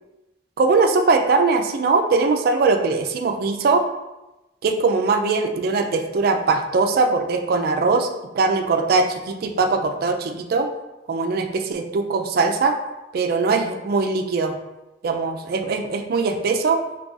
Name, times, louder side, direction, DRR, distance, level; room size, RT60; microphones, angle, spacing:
voice 1, 0.6-3.8 4.6-10.7 11.1-12.7 13.1-14.5 15.0-16.8, right 4 dB, 55° right, 5 dB, 0.3 m, -21 dB
2.9 x 2.4 x 3.8 m, 1.0 s
head